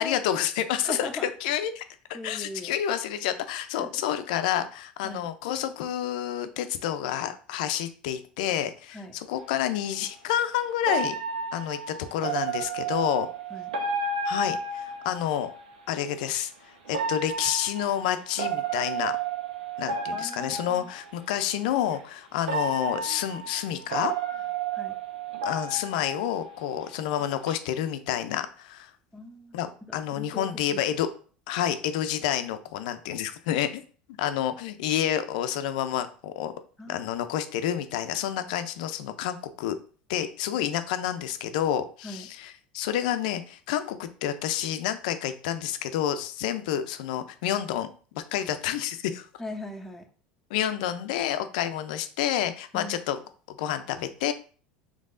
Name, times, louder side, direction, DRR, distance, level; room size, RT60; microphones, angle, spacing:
voice 1, 0.0-1.1 1.4-1.8 2.2-9.0 9.3-11.2 11.5-13.3 14.2-15.5 15.9-16.5 16.9-19.1 19.8-24.1 25.4-28.9 29.5-29.7 29.9-31.1 31.5-33.8 34.2-36.5 36.9-39.8 40.1-42.2 42.7-47.9 48.1-49.3 50.5-53.2 53.5-54.3, left 10 dB, 70° left, 10 dB, 0.5 m, -29 dB
voice 2, 0.7-1.3 1.5-1.6 2.1-2.7 3.8-4.0 5.0-5.3 8.9-9.1 13.5-13.7 20.1-20.9 24.7-25.0 29.1-30.8 36.8-37.1 42.0-42.3 49.4-50.1 52.7-53.0, left 2 dB, 5° left, 3 dB, 0.8 m, -39 dB
sound 1, 9.4-9.5 10.9-15.6 16.9-21.1 21.9-22.0 22.5-26.9 27.2-27.5, right 4 dB, 75° right, 0.8 m, -32 dB
5.3 x 3.3 x 2.6 m, 0.40 s
hypercardioid pair, 85°, 5 cm